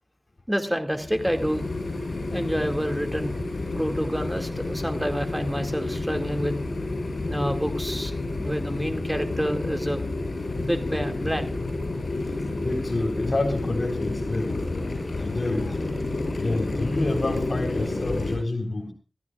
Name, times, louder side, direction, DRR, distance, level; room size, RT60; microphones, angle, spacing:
voice 1, 0.5-1.7 2.3-3.4 3.7-6.5 7.3-8.1 8.4-10.0 10.6-11.5, equal, 5° right, 6 dB, 2.3 m, -28 dB
sound 1, 0.9-18.4, left 2 dB, 85° left, 7.7 m, -30 dB
voice 2, 12.6-14.9 15.2-15.8 16.4-18.9, left 2 dB, 55° left, 3 dB, 3.9 m, -28 dB
25.5 x 14.5 x 2.4 m, 0.32 s
wide cardioid pair, 70°, 0 cm